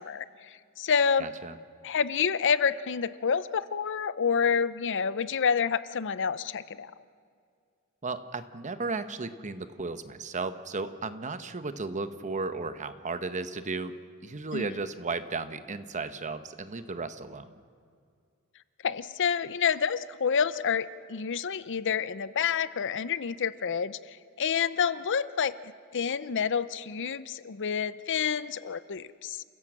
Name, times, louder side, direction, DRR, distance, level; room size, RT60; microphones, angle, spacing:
voice 1, 0.0-1.3 1.8-6.9 14.5-14.8 18.8-25.5 25.9-29.4, left 6 dB, 60° left, 16 dB, 0.6 m, -28 dB
voice 2, 1.2-1.6 8.0-13.9 14.2-17.5, right 3 dB, 35° right, 11 dB, 1.0 m, -34 dB
29.0 x 16.0 x 7.5 m, 2.3 s
head